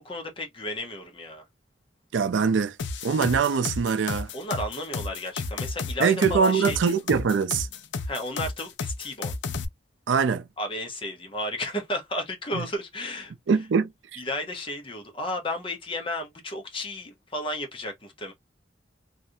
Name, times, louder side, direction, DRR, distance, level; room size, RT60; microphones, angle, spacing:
voice 1, 0.0-1.4 4.3-7.0 8.0-9.3 10.6-13.3 14.2-18.3, left 1 dB, 30° left, 0.9 m, -33 dB
voice 2, 2.1-2.8 3.0-4.3 6.0-7.7 10.1-10.4 12.5-12.6 13.5-14.2, right 6 dB, 90° right, 0.4 m, -23 dB
sound 1, 2.8-9.7, left 4 dB, 80° left, 0.5 m, -32 dB
3.2 x 2.5 x 2.7 m
head